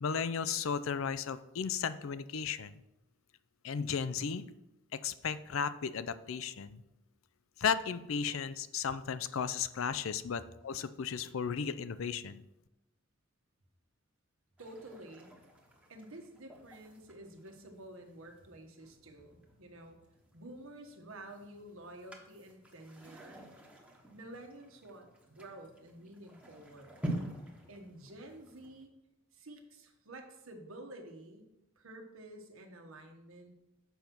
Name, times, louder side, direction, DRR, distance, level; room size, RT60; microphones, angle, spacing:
voice 1, 0.0-2.7 3.6-4.4 5.0-6.8 7.6-12.4, left 6 dB, 75° left, 14 dB, 0.5 m, -35 dB
sound 1, 14.6-28.8, right 1 dB, 5° right, 1.1 m, -48 dB
voice 2, 14.6-15.3 15.9-20.0 20.3-23.4 24.1-26.9 27.7-28.9 29.3-31.5 31.8-33.5, right 1 dB, 85° right, 4 dB, 1.3 m, -50 dB
6.9 x 5.4 x 6.0 m, 0.90 s
head